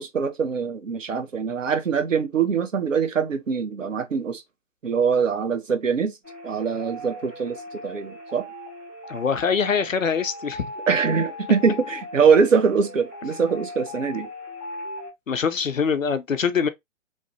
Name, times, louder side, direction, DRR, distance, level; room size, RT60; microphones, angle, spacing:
voice 1, 0.0-4.4 4.8-6.2 6.4-8.5 10.9-14.3, right 6 dB, 75° right, 0.7 m, -23 dB
sound 1, 6.2-15.1, left 1 dB, ahead, 0.4 m, -38 dB
voice 2, 9.1-10.7 15.3-16.7, left 6 dB, 85° left, 0.6 m, -23 dB
3.2 x 2.1 x 2.8 m
figure-of-eight pair, 120°, 38 cm